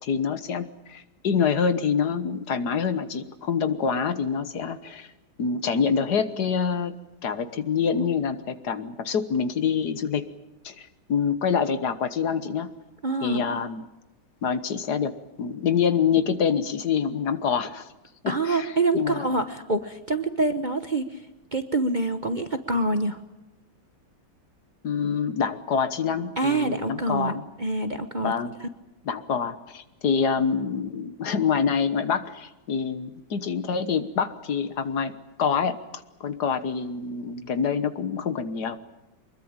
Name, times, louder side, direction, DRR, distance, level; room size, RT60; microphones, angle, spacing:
voice 1, 0.0-5.1 5.4-7.0 7.2-10.2 10.6-12.7 13.2-13.9 14.4-17.9 18.2-19.3 24.8-27.4 28.2-28.5 29.1-35.1 35.4-35.8 36.2-38.8, left 6 dB, 65° left, 11 dB, 1.8 m, -26 dB
voice 2, 13.0-13.6 18.3-21.2 21.5-23.2 26.4-28.3 28.6-28.7, right 2 dB, 30° right, 7 dB, 1.0 m, -26 dB
24.5 x 21.5 x 8.9 m, 0.98 s
omnidirectional pair, 1.9 m